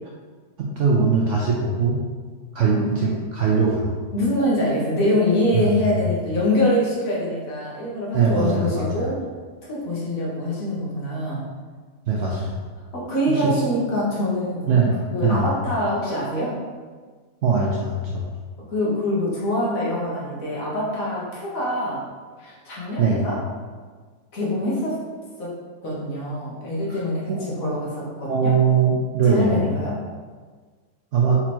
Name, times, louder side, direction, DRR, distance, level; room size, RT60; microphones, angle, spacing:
voice 1, 0.6-2.0 2.5-3.9 5.5-6.0 8.1-9.1 12.1-12.6 13.3-13.5 14.7-15.5 17.4-18.2 23.0-23.2 26.9-27.0 27.3-27.4 28.3-29.6 31.1-31.4, right 5 dB, 65° right, -3 dB, 0.7 m, -21 dB
voice 2, 2.6-3.1 4.1-9.2 9.6-11.4 12.9-14.6 15.1-16.6 18.7-22.0 22.4-23.4 24.3-25.0 25.4-25.6 25.8-28.5 29.2-30.0, left 1 dB, 60° left, -5 dB, 1.5 m, -24 dB
4.3 x 2.9 x 4.2 m, 1.5 s
omnidirectional pair, 1.7 m